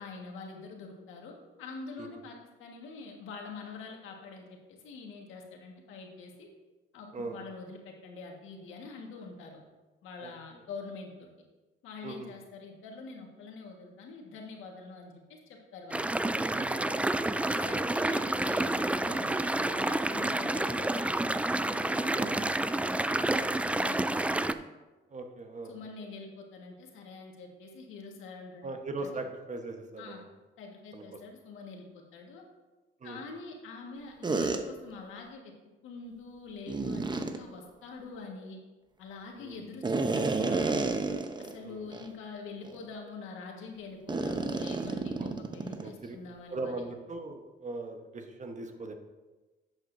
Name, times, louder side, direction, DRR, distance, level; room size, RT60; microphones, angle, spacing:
voice 1, 0.0-6.5 6.9-9.6 10.0-11.3 11.8-16.2 17.3-24.5 25.6-28.7 29.0-29.2 30.0-30.2 30.6-32.4 33.0-35.5 35.8-38.6 39.0-41.0 41.4-46.8, left 4 dB, 90° left, 1 dB, 1.6 m, -45 dB
voice 2, 10.2-10.6 12.0-12.3 16.5-17.1 22.1-22.4 25.1-25.7 28.6-30.3 30.9-31.1 33.0-33.2 39.4-39.7 41.6-41.9 45.2-46.2 46.5-48.9, right 2 dB, 35° right, 5 dB, 1.2 m, -40 dB
sound 1, 15.9-24.5, right 2 dB, 5° right, 0.3 m, -29 dB
sound 2, 34.2-34.6 36.7-37.4 39.8-41.6 41.9-42.1 42.6-42.8 44.1-45.9, right 3 dB, 20° right, 0.8 m, -30 dB
11.0 x 8.2 x 2.7 m, 1.2 s
cardioid pair, 90°, 20 cm